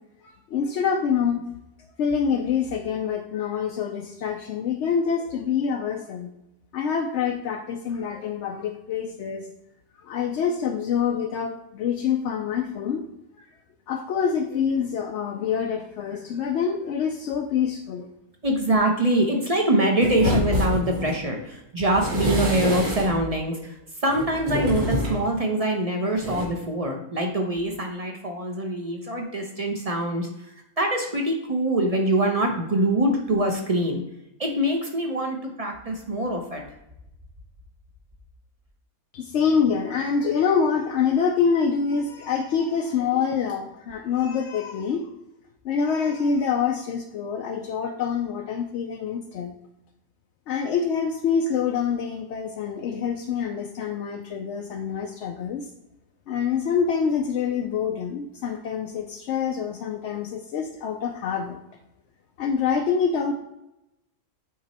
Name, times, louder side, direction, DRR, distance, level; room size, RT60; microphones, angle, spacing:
voice 1, 0.2-1.4 2.0-6.3 6.7-9.5 10.0-13.0 13.4-13.5 13.9-18.1 39.1-45.1 45.6-49.5 50.5-55.7 56.3-61.6 62.4-63.3, left 6 dB, 65° left, 2 dB, 0.7 m, -26 dB
voice 2, 18.4-23.7 24.0-30.3 30.8-34.0 34.4-36.6, right 1 dB, 35° right, 2 dB, 0.6 m, -24 dB
sound 1, 20.0-21.2 21.8-23.3 24.1-25.2 26.2-26.4, equal, 80° right, 2.7 m, -26 dB
8.5 x 3.1 x 4.2 m, 0.85 s
omnidirectional pair, 1.5 m